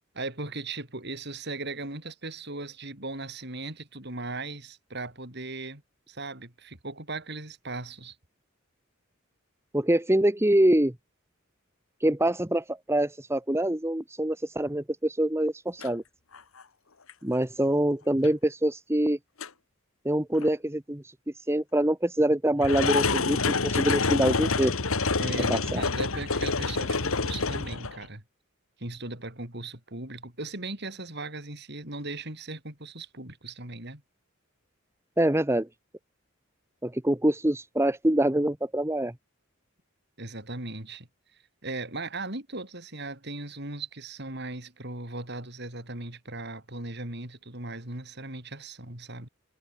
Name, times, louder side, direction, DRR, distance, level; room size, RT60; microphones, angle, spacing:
voice 1, 0.1-5.8 6.1-8.1 25.2-28.2 28.8-34.0 40.2-41.1 41.6-49.3, right 2 dB, 55° right, 5.0 m, -38 dB
voice 2, 9.7-10.9 12.0-16.0 17.2-19.2 20.0-21.1 21.5-24.8 25.5-25.8 35.2-35.7 36.8-39.1, right 1 dB, 10° right, 1.1 m, -25 dB
sound 1, 15.8-15.9 16.3-16.6 17.1-17.2 18.2-18.3 19.4-19.5 20.4-20.5 22.6-28.1, left 4 dB, 85° left, 1.7 m, -27 dB
head